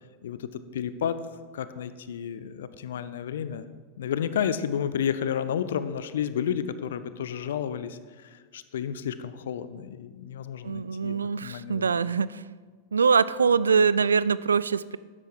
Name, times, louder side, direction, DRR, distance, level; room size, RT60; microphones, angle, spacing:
voice 1, 0.2-1.2 1.5-3.6 4.0-12.0, left 8 dB, 60° left, 13 dB, 0.7 m, -31 dB
voice 2, 10.6-12.4 12.9-15.0, right 5 dB, 70° right, 18 dB, 0.3 m, -23 dB
12.5 x 10.5 x 4.6 m, 1.5 s
figure-of-eight pair, 90°, 0 cm